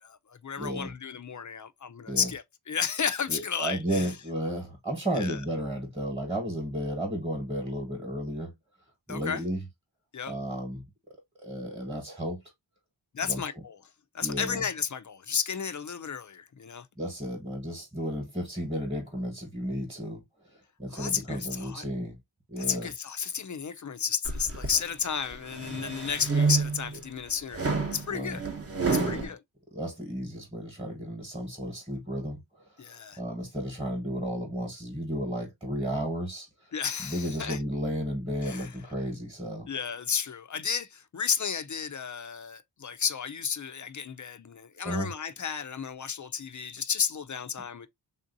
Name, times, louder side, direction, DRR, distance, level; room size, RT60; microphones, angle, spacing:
voice 1, 0.0-4.1 5.1-5.4 9.1-9.4 10.1-10.4 13.1-13.8 14.1-16.9 20.9-21.8 22.6-28.4 28.8-29.4 32.8-33.2 36.7-37.6 38.4-38.7 39.7-47.9, left 7 dB, 40° left, 0.4 m, -33 dB
voice 2, 0.6-0.9 2.1-2.3 3.3-8.5 9.1-9.6 10.3-10.8 11.4-12.4 13.3-13.4 14.2-14.6 17.0-20.2 20.5-22.2 22.5-22.9 28.1-28.4 28.8-29.3 29.7-36.7 37.0-39.7 44.8-45.1, equal, 10° right, 1.1 m, -33 dB
sound 1, 24.2-24.8 25.3-26.9 27.5-29.3, right 4 dB, 30° right, 0.8 m, -29 dB
3.6 x 2.6 x 2.5 m
wide cardioid pair, 85°, 49 cm